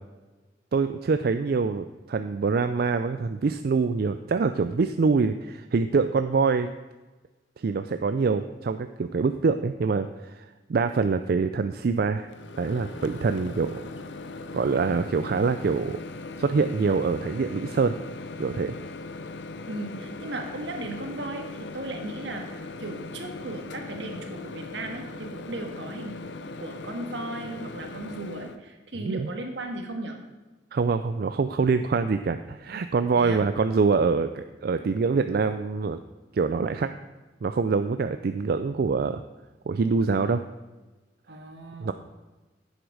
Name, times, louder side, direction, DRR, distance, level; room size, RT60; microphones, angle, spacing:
voice 1, 0.7-6.7 7.6-12.3 12.6-13.8 14.5-16.0 16.4-17.9 18.4-18.8 29.0-29.3 30.7-36.0 36.3-36.9 37.4-39.2 39.7-40.4 41.8-41.9, right 4 dB, 55° right, 9 dB, 0.4 m, -25 dB
Microwave oven, 12.3-28.6, left 3 dB, 80° left, 0.7 m, -39 dB
voice 2, 19.7-26.2 26.6-30.2 33.1-33.4 41.3-41.9, right 2 dB, 75° right, 4 dB, 1.6 m, -36 dB
10.5 x 8.0 x 4.8 m, 1.2 s
head